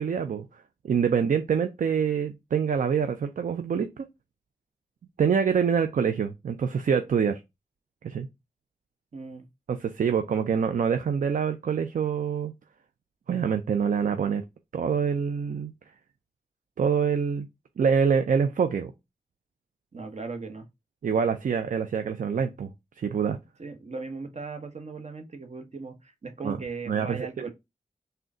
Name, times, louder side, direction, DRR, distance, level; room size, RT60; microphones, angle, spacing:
voice 1, 0.0-4.1 5.2-7.4 8.0-8.3 9.7-12.5 13.3-14.4 14.7-15.7 16.8-17.5 17.8-18.9 21.0-22.7 23.0-23.4 26.4-26.6 26.9-27.5, right 6 dB, 65° right, 0.4 m, -25 dB
voice 2, 9.1-9.5 19.9-20.7 23.6-27.5, right 4 dB, 50° right, 1.0 m, -38 dB
3.7 x 2.2 x 3.6 m
cardioid pair, 45°, 15 cm